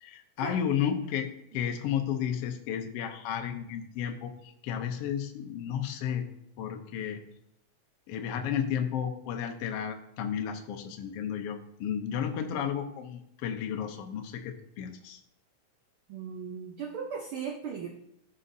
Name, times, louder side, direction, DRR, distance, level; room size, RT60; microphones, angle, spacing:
voice 1, 0.0-6.3 6.6-7.2 8.1-15.2, left 8 dB, 70° left, 4 dB, 1.6 m, -33 dB
voice 2, 16.1-17.9, right 6 dB, 70° right, 2 dB, 1.2 m, -37 dB
15.5 x 5.3 x 2.7 m, 0.76 s
omnidirectional pair, 3.3 m